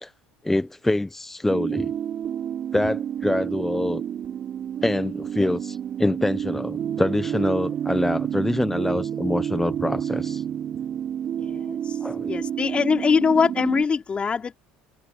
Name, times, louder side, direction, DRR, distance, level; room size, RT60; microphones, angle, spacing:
voice 1, 0.4-1.9 2.7-4.0 4.8-10.4 12.0-12.3, left 1 dB, 10° left, 0.9 m, -25 dB
sound 1, 1.5-13.8, right 9 dB, 45° right, 5.4 m, -29 dB
voice 2, 11.4-12.0 12.3-14.6, left 5 dB, 30° left, 3.5 m, -23 dB
supercardioid pair, 95°, 4 cm